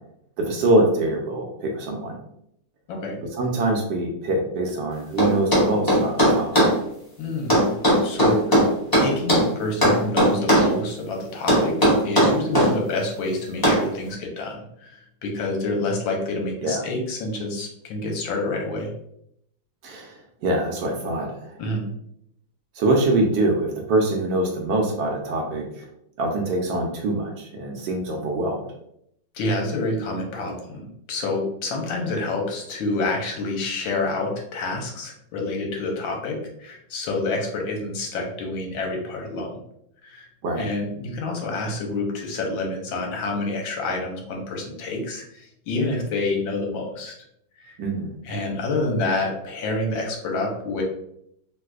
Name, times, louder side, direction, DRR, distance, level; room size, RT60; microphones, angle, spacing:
voice 1, 0.4-2.2 3.3-6.5 16.6-16.8 19.8-20.1 20.4-21.5 22.8-25.9 26.2-28.6 40.4-40.6 47.8-48.1, right 2 dB, 75° right, 1 dB, 1.1 m, -24 dB
voice 2, 2.9-3.2 7.2-7.7 8.0-8.6 9.0-11.7 12.0-18.9 21.6-21.9 29.3-39.6 40.0-40.3 40.6-47.1 47.6-47.7 48.2-50.8, left 2 dB, 85° left, 1 dB, 1.5 m, -28 dB
sound 1, 5.2-6.7 7.5-9.5 9.8-10.7 11.5-12.7 13.6-13.9, equal, 35° left, 0.3 m, -17 dB
4.0 x 2.5 x 2.3 m, 0.75 s
omnidirectional pair, 2.1 m